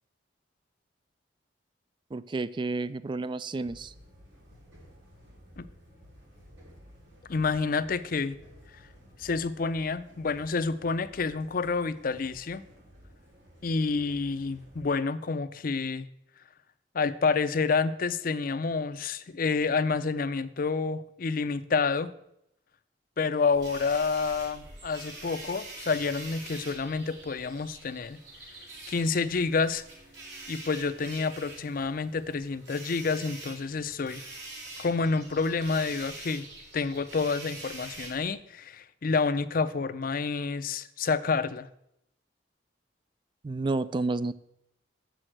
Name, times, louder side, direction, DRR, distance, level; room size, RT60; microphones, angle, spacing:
voice 1, 2.1-3.9 43.4-44.3, right 3 dB, 25° right, 16 dB, 0.3 m, -30 dB
sound 1, 3.6-14.9, equal, 90° right, 4.5 m, -54 dB
voice 2, 7.3-8.4 9.2-12.6 13.6-16.1 16.9-22.1 23.2-28.2 28.9-29.8 30.5-34.2 34.8-36.4 36.7-41.7, left 4 dB, 50° left, 14 dB, 0.5 m, -29 dB
sound 2, 23.5-38.3, right 2 dB, 70° right, 2.6 m, -45 dB
6.8 x 6.3 x 7.6 m, 0.78 s
head